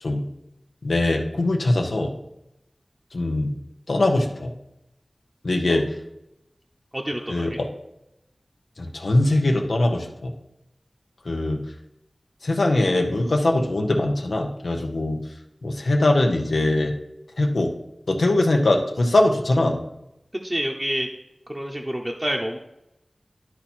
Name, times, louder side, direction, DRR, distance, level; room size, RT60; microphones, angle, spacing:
voice 1, 0.8-2.1 3.1-3.5 3.9-4.5 5.4-5.8 7.3-7.7 8.8-10.3 11.2-11.6 12.4-15.2 15.6-16.9 17.4-17.7 18.1-19.8, left 2 dB, 90° left, 2 dB, 0.9 m, -21 dB
voice 2, 6.9-7.6 20.4-21.1 21.5-22.6, equal, 20° right, 0 dB, 0.8 m, -28 dB
11.5 x 4.3 x 4.3 m, 0.87 s
wide cardioid pair, 50°, 0 cm